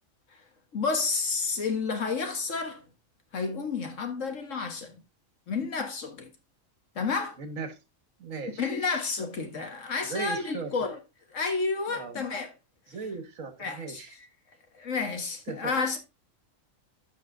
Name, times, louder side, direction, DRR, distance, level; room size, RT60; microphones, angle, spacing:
voice 1, 0.7-2.8 3.3-5.0 5.5-6.3 7.0-7.4 8.6-11.0 11.3-12.5 13.6-14.0 14.7-16.0, left 4 dB, 70° left, 1.8 m, -30 dB
voice 2, 7.4-7.8 8.2-8.7 10.1-10.7 11.9-12.2 12.9-14.1 15.5-15.8, right 4 dB, 75° right, 1.7 m, -37 dB
13.5 x 4.9 x 2.6 m
omnidirectional pair, 1.4 m